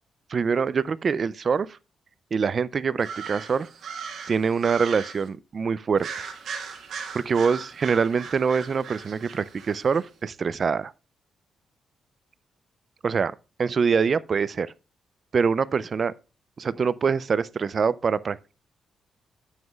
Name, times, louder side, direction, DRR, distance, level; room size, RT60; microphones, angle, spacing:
voice 1, 0.3-1.7 2.3-3.7 4.3-6.3 7.1-10.9 13.0-13.3 13.6-14.7 15.3-16.1 16.6-18.6, right 5 dB, 35° right, 0.3 m, -24 dB
sound 1, 3.0-5.3 6.0-10.0, right 6 dB, 55° right, 1.3 m, -38 dB
9.3 x 7.3 x 2.3 m
wide cardioid pair, 165°, 0 cm